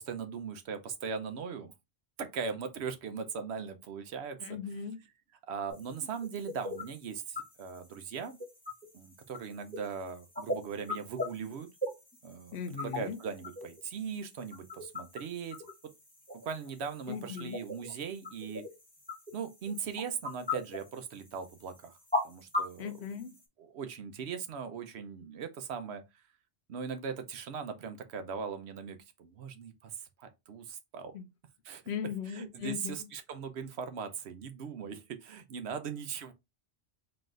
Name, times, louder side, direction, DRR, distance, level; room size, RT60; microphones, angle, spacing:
voice 1, 0.0-1.7 2.2-4.4 5.4-8.4 8.9-11.7 12.2-15.6 16.4-18.6 19.3-21.9 22.2-22.9 23.7-26.0 26.7-31.1 31.7-31.8 32.3-36.3, right 6 dB, 75° right, 0.9 m, -39 dB
voice 2, 4.4-5.0 12.5-13.2 17.1-17.6 22.8-23.4 31.1-31.3 31.9-33.1, left 7 dB, 70° left, 0.9 m, -38 dB
sound 1, 5.7-23.4, left 2 dB, 10° left, 1.0 m, -40 dB
3.9 x 2.5 x 3.7 m
omnidirectional pair, 1.1 m